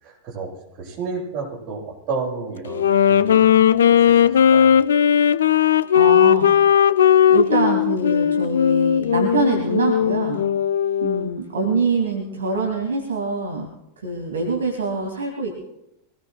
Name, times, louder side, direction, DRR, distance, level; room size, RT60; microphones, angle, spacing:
voice 1, 0.0-0.5 0.8-3.5 4.1-4.7, right 4 dB, 40° right, -2 dB, 7.9 m, -31 dB
Wind instrument woodwind instrument, 2.7-11.4, left 9 dB, 65° left, 0.5 m, -17 dB
voice 2, 5.9-6.9 7.3-10.4 11.0-13.7 14.0-15.6, right 4 dB, 70° right, 1 dB, 2.3 m, -24 dB
24.0 x 18.5 x 2.3 m, 0.85 s
figure-of-eight pair, 90°, 0 cm